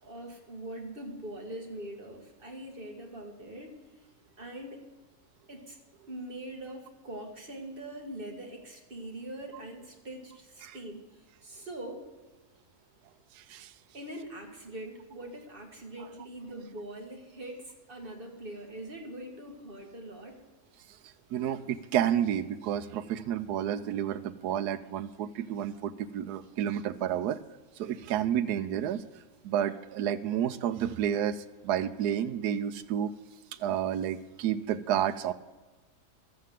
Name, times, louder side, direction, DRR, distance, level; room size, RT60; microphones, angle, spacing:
voice 1, 0.0-3.8 4.4-4.8 5.5-5.8 6.1-12.0 13.9-20.4, right 1 dB, 35° right, 2 dB, 1.8 m, -42 dB
voice 2, 13.4-13.7 21.3-27.4 27.8-29.0 29.4-33.1 33.6-35.3, right 10 dB, 85° right, 11 dB, 1.2 m, -30 dB
12.5 x 7.5 x 7.5 m, 1.2 s
omnidirectional pair, 1.7 m